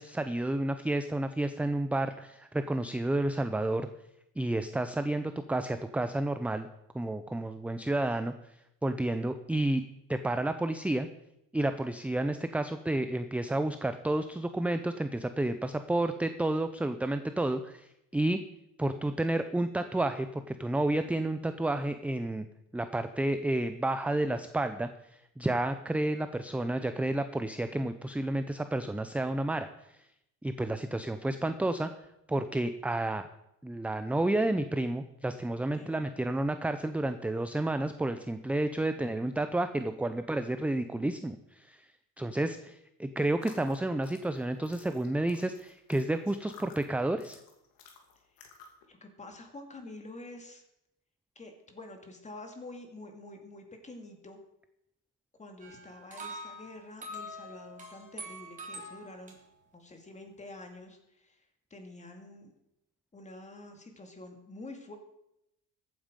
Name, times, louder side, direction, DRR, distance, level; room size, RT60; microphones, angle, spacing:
voice 1, 0.0-3.9 4.4-6.7 6.9-8.5 8.8-9.8 10.1-11.1 11.5-18.4 18.8-22.5 22.7-30.0 30.4-31.9 32.3-33.3 33.6-41.8 42.2-47.4, right 1 dB, 5° right, 9 dB, 0.5 m, -31 dB
sound 1, 43.3-48.9, left 5 dB, 90° left, 2.6 m, -55 dB
voice 2, 48.9-50.6 51.4-54.4 55.4-59.4 59.7-61.5 61.7-62.5 63.1-65.0, left 2 dB, 20° left, 4 dB, 2.3 m, -47 dB
sound 2, 55.6-59.3, equal, 20° right, 3.7 m, -44 dB
14.5 x 8.8 x 5.2 m, 0.83 s
cardioid pair, 130°, 35 cm